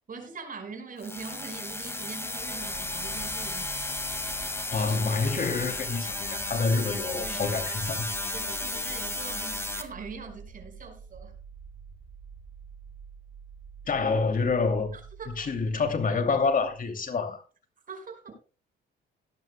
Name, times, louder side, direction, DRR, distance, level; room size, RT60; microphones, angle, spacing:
voice 1, 0.1-3.7 7.2-7.6 8.3-11.3 14.9-15.5 17.9-18.4, right 4 dB, 45° right, 5.2 m, -42 dB
sound 1, 1.0-9.8, left 2 dB, 10° left, 1.9 m, -34 dB
sound 2, 2.4-17.1, right 5 dB, 60° right, 6.7 m, -48 dB
voice 2, 4.7-8.1 13.9-14.9 15.3-17.4, left 4 dB, 45° left, 2.6 m, -27 dB
17.5 x 12.5 x 2.2 m
cardioid pair, 90°, 20 cm